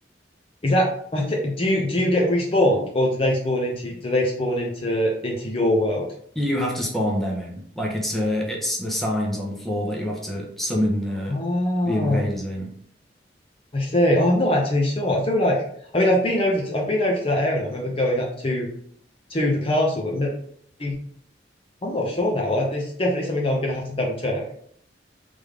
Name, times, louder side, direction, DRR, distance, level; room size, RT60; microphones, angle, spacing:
voice 1, 1.1-6.1 11.3-12.2 13.7-15.6 15.9-18.7 19.3-20.3 20.8-20.9 21.8-24.4, left 1 dB, 30° left, -1 dB, 0.6 m, -22 dB
voice 2, 6.3-11.4 11.8-12.7, left 1 dB, ahead, -2 dB, 0.9 m, -26 dB
3.5 x 3.4 x 3.4 m, 0.64 s
head